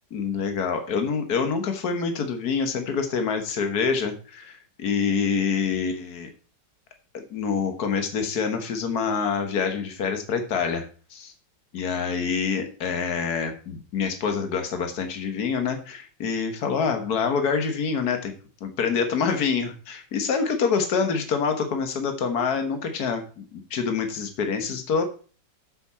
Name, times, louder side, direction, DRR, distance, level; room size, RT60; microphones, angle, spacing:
voice 1, 0.1-6.3 7.1-11.3 11.7-18.3 18.6-25.0, left 5 dB, 60° left, 6 dB, 1.8 m, -26 dB
7.8 x 7.4 x 4.3 m, 0.38 s
omnidirectional pair, 2.0 m